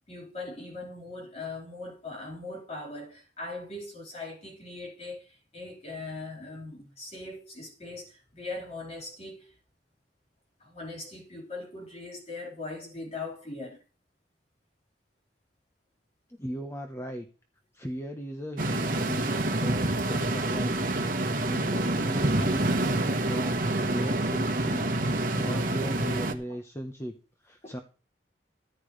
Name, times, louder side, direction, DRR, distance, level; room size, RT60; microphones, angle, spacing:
voice 1, 0.0-9.6 10.6-13.8 27.6-27.7, left 2 dB, 40° left, 4.6 m, -40 dB
voice 2, 16.3-17.3 17.7-20.8 21.1-24.9 25.4-27.1 27.4-27.8, equal, 15° left, 1.0 m, -37 dB
sound 1, 18.6-26.3, right 2 dB, 55° right, 1.3 m, -27 dB
14.0 x 10.5 x 3.3 m
head